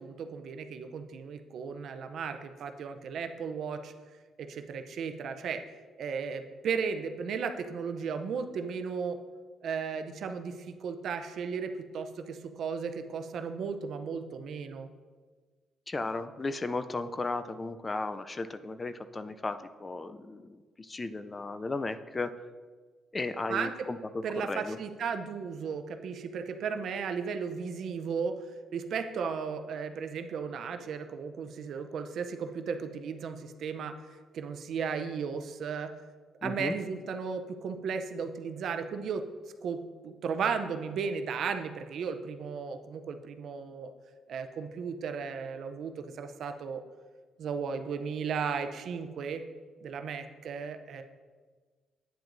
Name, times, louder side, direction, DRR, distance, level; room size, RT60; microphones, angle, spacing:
voice 1, 0.0-3.9 4.4-5.6 6.0-9.2 9.6-14.9 23.5-23.7 24.2-28.3 28.7-33.9 34.3-35.9 36.4-39.2 39.6-43.9 44.3-46.8 47.4-49.4 49.8-51.0, right 6 dB, 65° right, 8 dB, 0.6 m, -35 dB
voice 2, 15.9-22.4 23.1-24.0 24.5-24.8 36.4-36.7, left 3 dB, 25° left, 11 dB, 0.4 m, -35 dB
9.0 x 7.6 x 2.6 m, 1.5 s
cardioid pair, 90°, 0 cm